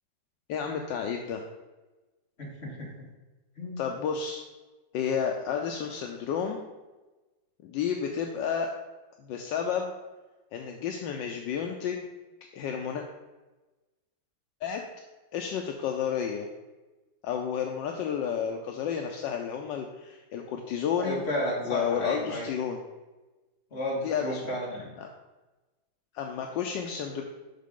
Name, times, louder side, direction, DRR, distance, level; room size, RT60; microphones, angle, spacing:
voice 1, 0.5-1.4 3.8-4.4 4.9-6.6 7.6-8.7 9.2-9.9 10.5-12.0 12.5-13.0 14.6-14.8 15.3-16.5 17.2-21.2 21.7-22.8 24.0-24.5 25.0-25.1 26.1-27.2, left 7 dB, 75° left, 3 dB, 1.3 m, -31 dB
voice 2, 2.4-2.9 3.6-3.8 21.0-22.5 23.7-24.9, left 1 dB, 35° left, -3 dB, 2.0 m, -32 dB
7.4 x 5.6 x 3.7 m, 1.1 s
omnidirectional pair, 2.1 m